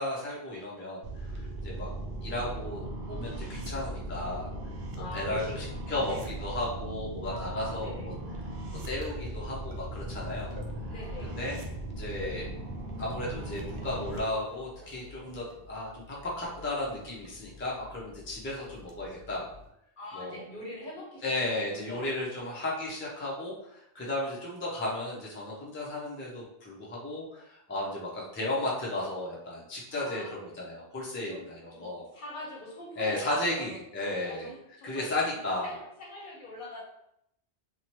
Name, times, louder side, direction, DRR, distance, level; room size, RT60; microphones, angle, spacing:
voice 1, 0.0-1.9 2.2-4.5 4.9-8.1 8.9-10.5 11.2-11.6 11.9-12.5 13.0-19.5 20.1-20.4 21.2-32.1 33.0-34.5 34.8-35.7, left 1 dB, 15° left, -4 dB, 0.4 m, -34 dB
sound 1, 1.0-14.2, right 1 dB, 65° right, 0.7 m, -38 dB
voice 2, 5.0-5.5 5.9-6.5 7.2-8.1 10.9-11.4 20.0-22.1 29.9-30.4 31.3-31.4 31.7-33.7 34.0-36.8, left 1 dB, 55° left, -3 dB, 0.8 m, -43 dB
sound 2, 8.8-19.7, left 2 dB, 85° right, 0.9 m, -51 dB
2.8 x 2.1 x 2.9 m, 0.77 s
omnidirectional pair, 1.1 m